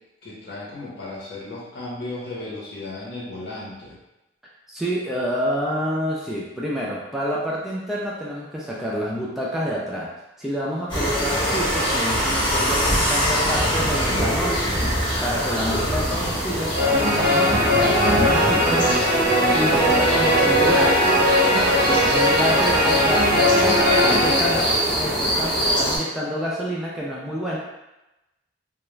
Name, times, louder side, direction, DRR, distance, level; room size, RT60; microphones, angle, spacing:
voice 1, 0.2-4.0 21.8-22.4 24.0-24.9, left 1 dB, 60° left, -6 dB, 0.9 m, -33 dB
voice 2, 4.7-10.1 10.4-14.6 15.2-18.8 19.5-21.0 21.8-24.6 25.0-27.6, equal, ahead, -6 dB, 0.3 m, -28 dB
sound 1, 10.9-26.0, equal, 25° left, 0.7 m, -24 dB
sound 2, 16.7-25.3, equal, 60° right, 0.5 m, -19 dB
2.3 x 2.2 x 3.0 m, 0.98 s
head